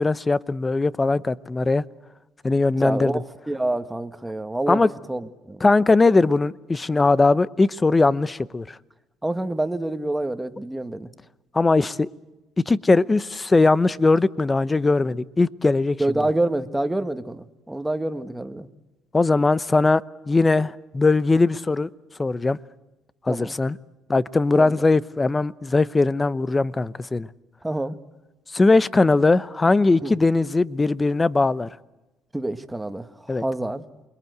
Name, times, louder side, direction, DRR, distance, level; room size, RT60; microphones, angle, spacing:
voice 1, 0.0-1.8 2.4-3.1 4.7-4.9 5.6-8.8 11.5-12.1 12.7-16.0 19.1-21.9 22.2-22.6 23.3-23.8 24.1-27.3 28.5-31.7 33.3-33.4, left 3 dB, 20° left, 0.8 m, -20 dB
voice 2, 2.7-4.8 5.1-5.6 9.2-11.1 16.0-18.7 23.3-23.6 24.5-24.8 27.6-28.0 30.0-30.2 32.3-33.8, right 1 dB, 10° right, 1.6 m, -27 dB
28.5 x 22.0 x 8.1 m
supercardioid pair, 85°, 0 cm